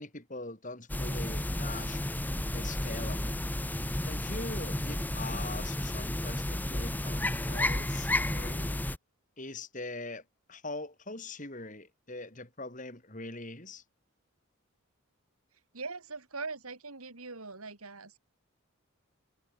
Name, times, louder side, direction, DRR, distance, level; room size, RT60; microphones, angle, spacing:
voice 1, 0.0-2.0 2.5-3.4 4.0-8.7 9.4-10.2 10.5-13.8, left 2 dB, 35° left, 4.2 m, -42 dB
sound 1, 0.9-9.0, left 1 dB, 10° left, 0.8 m, -32 dB
voice 2, 15.7-18.2, right 4 dB, 80° right, 3.4 m, -41 dB
head